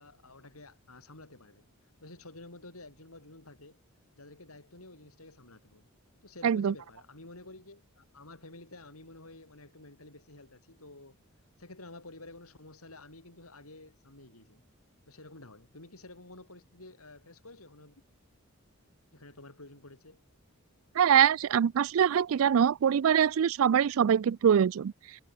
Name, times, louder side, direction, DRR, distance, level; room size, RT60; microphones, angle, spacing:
voice 1, 0.0-1.7 2.0-3.8 4.1-5.9 6.2-11.2 11.6-14.6 15.1-18.0 19.1-20.2, left 2 dB, 80° left, 5.8 m, -51 dB
voice 2, 6.4-6.7 21.0-24.9, right 8 dB, 70° right, 0.4 m, -23 dB
head